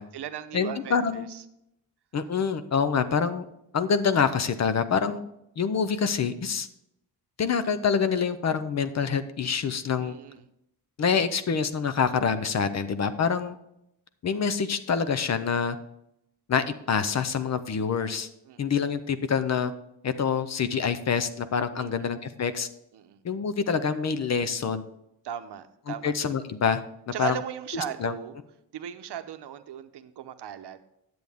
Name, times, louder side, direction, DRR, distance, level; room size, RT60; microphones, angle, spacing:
voice 1, 0.0-1.4 10.0-10.4 18.5-18.7 21.8-22.1 22.9-23.2 25.2-26.1 27.1-28.4 28.7-30.8, right 9 dB, 75° right, 9 dB, 0.8 m, -37 dB
voice 2, 0.5-1.3 2.1-3.5 3.7-5.2 5.6-6.7 7.4-10.2 11.0-13.6 14.2-15.8 16.5-18.3 18.6-19.7 20.0-22.7 23.2-24.8 26.0-26.8 27.2-27.3 28.0-28.1, left 6 dB, 40° left, 11 dB, 0.6 m, -26 dB
10.5 x 7.8 x 3.5 m, 0.82 s
wide cardioid pair, 165°, 41 cm